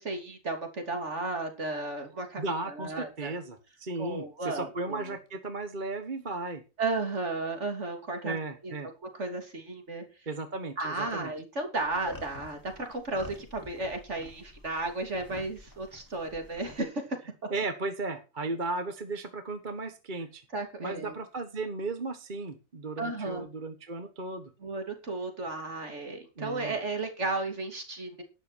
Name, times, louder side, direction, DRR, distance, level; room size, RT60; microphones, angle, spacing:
voice 1, 0.0-3.3 4.0-5.0 6.8-8.4 8.6-8.7 9.0-10.0 10.8-17.2 20.5-21.1 23.0-23.5 24.6-28.2, right 2 dB, 60° right, 5 dB, 3.3 m, -34 dB
voice 2, 2.4-6.6 8.2-8.9 10.3-11.3 17.5-20.4 20.8-24.5 26.4-26.8, right 3 dB, 35° right, 8 dB, 1.5 m, -35 dB
sound 1, 11.8-16.8, left 1 dB, 15° left, 2.7 m, -47 dB
12.0 x 10.5 x 4.4 m, 0.30 s
omnidirectional pair, 1.4 m